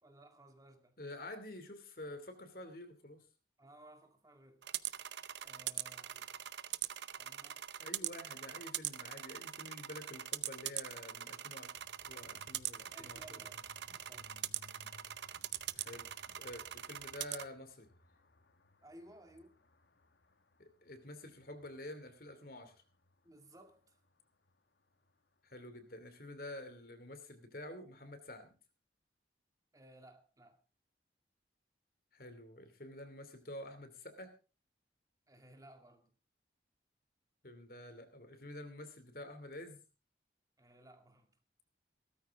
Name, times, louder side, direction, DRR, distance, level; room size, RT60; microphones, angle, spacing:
voice 1, 0.0-1.0 3.6-4.7 5.4-6.3 7.2-7.6 12.9-14.3 18.8-19.6 23.2-24.0 29.7-30.6 35.3-36.1 40.6-41.4, right 1 dB, 20° right, 2.1 m, -59 dB
voice 2, 1.0-3.2 7.8-11.7 12.1-13.5 15.7-17.9 20.6-22.7 25.4-28.6 32.1-34.3 37.4-39.8, left 1 dB, 55° left, 2.6 m, -49 dB
sound 1, 4.6-17.4, right 12 dB, 75° right, 0.7 m, -42 dB
sound 2, 11.7-25.6, left 2 dB, 70° left, 1.2 m, -65 dB
17.0 x 13.5 x 3.6 m
head